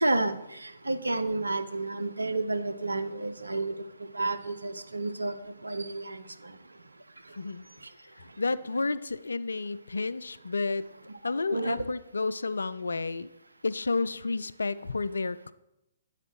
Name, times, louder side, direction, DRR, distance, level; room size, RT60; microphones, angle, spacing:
voice 1, 0.0-0.4 0.6-3.7 4.1-5.3 5.6-6.2 11.5-11.8, right 2 dB, 85° right, 0.6 m, -30 dB
voice 2, 7.4-7.7 8.4-10.9 11.2-13.3 13.6-15.5, left 3 dB, 75° left, 0.3 m, -31 dB
9.6 x 9.0 x 3.1 m
figure-of-eight pair, 125°, 0 cm